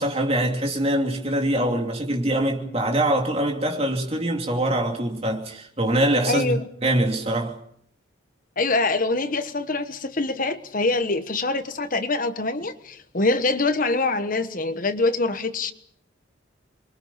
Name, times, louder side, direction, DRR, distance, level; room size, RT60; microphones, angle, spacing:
voice 1, 0.0-7.6, right 1 dB, 30° right, 3.1 m, -24 dB
voice 2, 6.3-6.6 8.6-15.7, left 3 dB, 40° left, 1.2 m, -24 dB
27.5 x 23.0 x 5.7 m
head